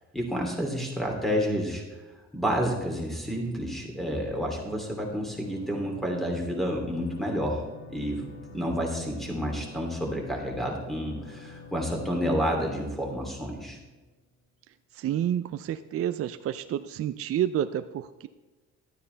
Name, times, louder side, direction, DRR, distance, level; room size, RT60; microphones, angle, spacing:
voice 1, 0.1-1.8 2.3-7.6 7.9-13.8, equal, ahead, 0 dB, 3.0 m, -30 dB
sound 1, 2.8-14.3, left 4 dB, 35° left, 3.5 m, -48 dB
voice 2, 14.9-18.3, right 10 dB, 50° right, 11 dB, 0.4 m, -29 dB
12.5 x 9.5 x 3.4 m, 1.2 s
cardioid pair, 90°, 30 cm